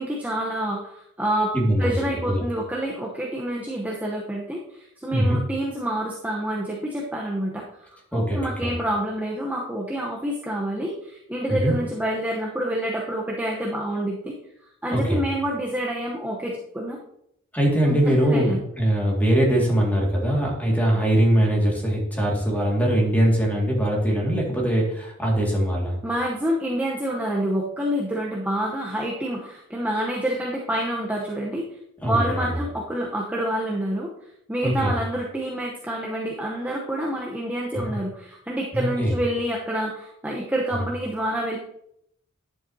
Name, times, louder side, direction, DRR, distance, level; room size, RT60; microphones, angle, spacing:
voice 1, 0.0-1.5 1.8-7.6 8.1-14.4 14.8-17.0 17.9-18.6 26.0-31.7 32.1-34.1 34.5-41.6, right 1 dB, 10° right, -3 dB, 0.9 m, -27 dB
voice 2, 1.5-2.4 5.1-5.4 8.1-8.7 11.5-11.7 14.9-15.2 17.5-26.0 32.0-32.6 34.6-34.9 37.7-37.8 38.7-39.2, equal, 10° left, -2 dB, 2.1 m, -22 dB
10.5 x 7.4 x 2.8 m, 0.75 s
head